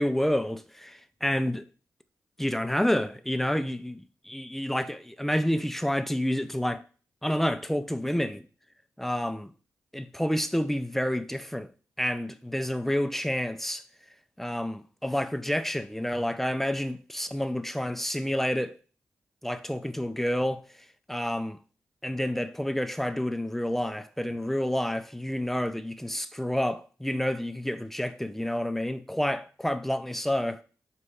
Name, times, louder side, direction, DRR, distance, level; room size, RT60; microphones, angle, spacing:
voice 1, 0.0-1.7 2.4-6.8 7.2-8.5 9.0-9.5 9.9-11.7 12.0-13.8 14.4-18.8 19.4-20.6 21.1-21.6 22.0-30.6, equal, 5° left, 0.3 m, -29 dB
3.1 x 2.3 x 4.2 m
cardioid pair, 50°, 7 cm